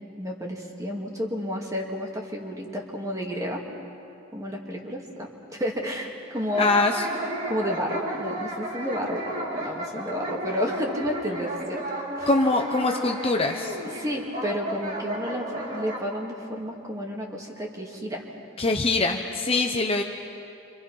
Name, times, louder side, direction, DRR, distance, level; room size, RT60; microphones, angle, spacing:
voice 1, 0.2-3.6 4.3-6.7 7.5-12.3 13.9-18.2, equal, 15° right, 0 dB, 2.4 m, -31 dB
sound 1, 6.3-16.0, right 1 dB, 35° right, 3.4 m, -33 dB
voice 2, 6.6-7.1 12.3-13.8 18.6-20.0, left 2 dB, 25° left, 3 dB, 0.9 m, -23 dB
29.0 x 26.0 x 5.6 m, 2.6 s
head